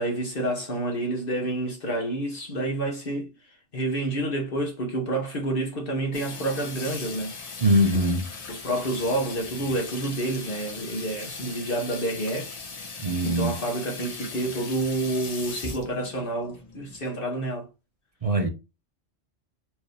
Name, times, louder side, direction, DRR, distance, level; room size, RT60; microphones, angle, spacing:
voice 1, 0.0-7.4 8.5-12.6 12.9-17.7, right 1 dB, 55° left, 1.1 m, -29 dB
Water tap faucet / Sink (filling or washing), 6.1-17.0, left 4 dB, 40° left, 0.8 m, -39 dB
voice 2, 7.6-8.3 13.0-13.5 18.2-18.5, equal, 40° right, 0.7 m, -22 dB
4.5 x 2.7 x 3.2 m
omnidirectional pair, 1.2 m